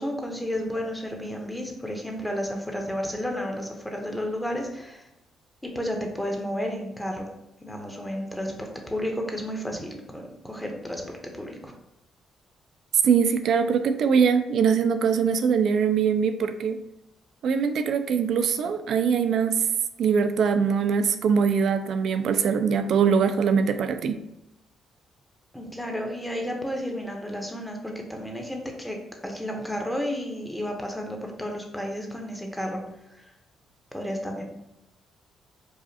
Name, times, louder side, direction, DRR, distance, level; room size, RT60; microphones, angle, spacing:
voice 1, 0.0-5.1 5.6-7.3 7.6-11.0 11.3-11.7 25.5-29.0 29.2-32.8 33.1-33.3 33.9-34.4, equal, 5° left, 1 dB, 0.8 m, -32 dB
voice 2, 13.0-16.8 17.4-19.6 20.0-24.2, right 6 dB, 65° right, 9 dB, 0.4 m, -22 dB
4.8 x 2.4 x 2.8 m, 0.86 s
cardioid pair, 90°, 0 cm